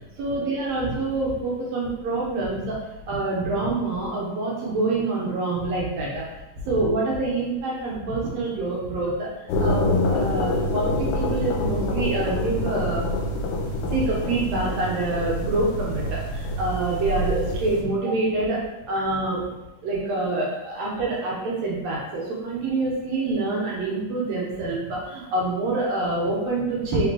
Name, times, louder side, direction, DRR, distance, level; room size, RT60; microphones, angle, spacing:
voice 1, 0.2-2.8 3.1-6.2 6.6-13.1 13.9-18.6 18.9-19.5 19.8-27.1, right 2 dB, 70° right, -4 dB, 1.7 m, -26 dB
sound 1, 9.5-17.8, left 1 dB, 80° left, 2.1 m, -26 dB
4.8 x 3.9 x 2.8 m, 1.0 s
omnidirectional pair, 3.7 m